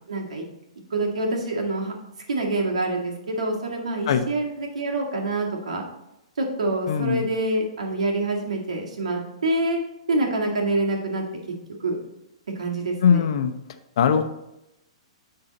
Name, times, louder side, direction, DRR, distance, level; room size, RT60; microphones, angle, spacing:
voice 1, 0.1-0.4 0.9-1.9 2.3-5.9 6.4-9.8 10.1-11.2 11.8-12.0 12.6-13.2, right 2 dB, 90° right, -1 dB, 1.9 m, -26 dB
voice 2, 6.9-7.2 13.0-13.5 14.0-14.2, left 7 dB, 60° left, 7 dB, 0.8 m, -20 dB
9.9 x 3.9 x 4.0 m, 0.88 s
hypercardioid pair, 145°, 3 cm